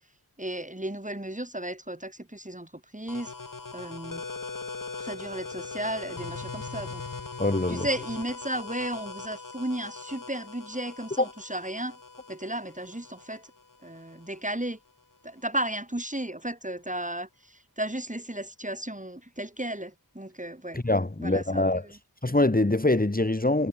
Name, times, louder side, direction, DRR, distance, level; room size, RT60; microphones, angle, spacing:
voice 1, 0.4-3.3 3.7-4.2 5.0-7.0 7.7-12.0 12.3-13.5 13.8-14.8 15.2-20.8 21.2-22.0, right 1 dB, 20° right, 4.9 m, -34 dB
sound 1, 3.1-14.5, left 4 dB, 60° left, 1.8 m, -40 dB
voice 2, 7.4-7.9 11.2-11.3 20.7-21.8 22.2-23.7, left 2 dB, 25° left, 1.8 m, -24 dB
wide cardioid pair, 45°, 37 cm